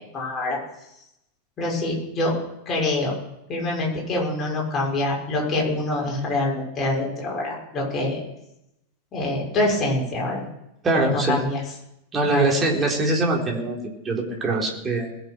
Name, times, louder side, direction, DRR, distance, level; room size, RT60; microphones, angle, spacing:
voice 1, 0.1-0.6 1.6-2.3 2.7-3.1 3.5-8.2 9.1-10.4 10.9-11.6 12.2-12.6, left 2 dB, 25° left, -2 dB, 6.3 m, -25 dB
voice 2, 10.8-11.4 12.1-15.1, right 2 dB, 20° right, 0 dB, 3.7 m, -23 dB
21.0 x 7.1 x 6.2 m, 0.83 s
figure-of-eight pair, 90°, 0 cm